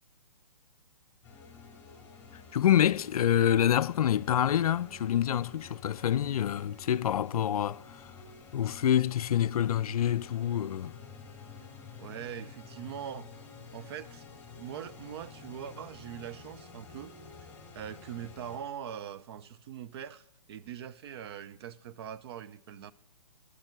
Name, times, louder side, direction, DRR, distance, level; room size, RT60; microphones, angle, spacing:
sound 1, 1.2-18.6, left 5 dB, 10° left, 3.4 m, -50 dB
voice 1, 2.5-8.1 8.5-10.9, left 10 dB, 65° left, 0.4 m, -27 dB
voice 2, 12.0-13.3 13.7-14.2 14.6-17.1 17.7-22.9, right 9 dB, 40° right, 0.6 m, -42 dB
11.0 x 7.3 x 8.0 m
hypercardioid pair, 140°, 20 cm